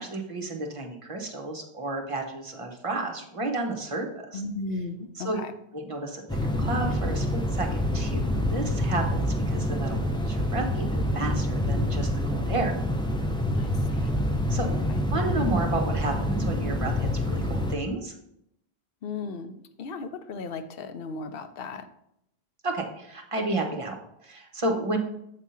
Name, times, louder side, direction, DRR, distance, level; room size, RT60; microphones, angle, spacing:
voice 1, 0.0-4.4 5.1-5.4 5.7-12.7 14.5-14.7 15.1-18.1 22.6-24.0 24.2-25.0, right 2 dB, 35° right, 2 dB, 1.0 m, -32 dB
voice 2, 4.3-5.5 13.6-13.7 19.0-21.9, left 3 dB, 70° left, 9 dB, 0.8 m, -35 dB
sound 1, 6.3-17.8, left 1 dB, 5° left, 0.5 m, -27 dB
7.7 x 3.6 x 5.5 m, 0.78 s
omnidirectional pair, 1.0 m